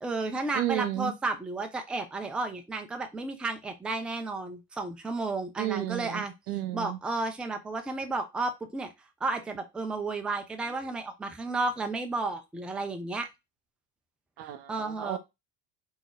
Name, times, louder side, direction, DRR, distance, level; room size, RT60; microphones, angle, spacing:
voice 1, 0.0-6.3 6.7-8.9 9.2-13.3 14.7-15.2, right 3 dB, ahead, 0.3 m, -32 dB
voice 2, 0.5-1.1 5.6-7.0 14.4-15.2, right 14 dB, 90° right, 0.6 m, -32 dB
2.3 x 2.0 x 3.8 m
hypercardioid pair, 70°, 48 cm